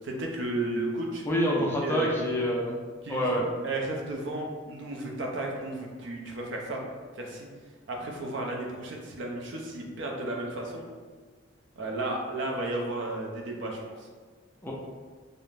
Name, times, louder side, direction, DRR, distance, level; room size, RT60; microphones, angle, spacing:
voice 1, 0.0-1.2 1.6-2.2 3.0-6.8 7.1-7.5 7.9-10.9 11.8-14.1, right 2 dB, 65° right, 0 dB, 0.4 m, -33 dB
voice 2, 1.3-2.8 3.1-3.4 14.6-14.7, equal, 10° left, -3 dB, 0.3 m, -26 dB
2.4 x 2.0 x 3.1 m, 1.5 s
head